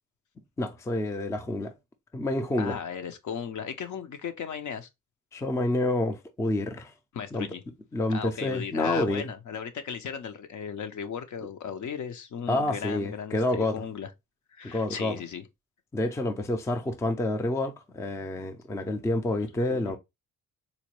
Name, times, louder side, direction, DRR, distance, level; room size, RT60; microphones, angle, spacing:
voice 1, 0.6-1.7 2.1-2.8 5.3-6.9 7.3-7.5 7.9-9.3 12.5-13.8 14.6-15.2 15.9-20.0, left 2 dB, 10° left, 0.4 m, -28 dB
voice 2, 2.6-4.9 7.1-7.6 8.1-14.1 14.5-15.4 19.6-19.8, left 7 dB, 60° left, 0.7 m, -36 dB
4.0 x 2.2 x 3.0 m
cardioid pair, 125°, 34 cm